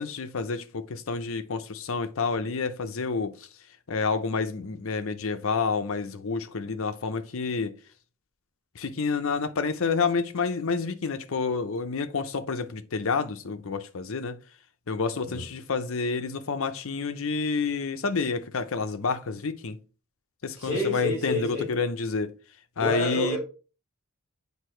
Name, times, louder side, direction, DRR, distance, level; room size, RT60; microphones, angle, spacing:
voice 1, 0.0-3.3 3.9-7.7 8.8-14.4 14.9-19.8 20.4-22.3 22.8-23.4, left 4 dB, 65° left, 0.7 m, -29 dB
voice 2, 20.6-21.7 22.8-23.4, left 2 dB, 40° left, 2.3 m, -28 dB
8.1 x 2.8 x 4.4 m
head